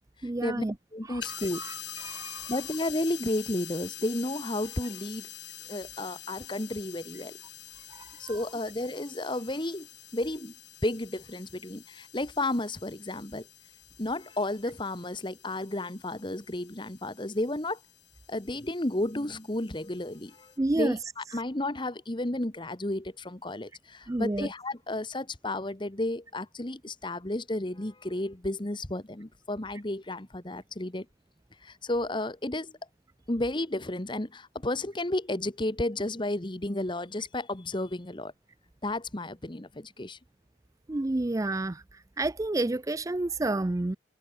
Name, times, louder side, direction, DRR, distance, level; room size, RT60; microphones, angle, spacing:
voice 1, 0.2-0.7 1.0-2.5 7.9-8.4 20.6-21.0 24.1-24.5 40.9-44.0, right 2 dB, 20° right, 0.4 m, -30 dB
voice 2, 0.9-1.6 2.5-5.3 5.7-7.4 8.2-9.9 10.1-10.5 10.8-13.4 14.0-17.8 18.3-31.0 31.6-32.7 33.3-38.3 38.8-40.2, left 1 dB, 25° left, 1.3 m, -32 dB
sound 1, 1.2-20.6, left 13 dB, 70° left, 4.4 m, -46 dB
head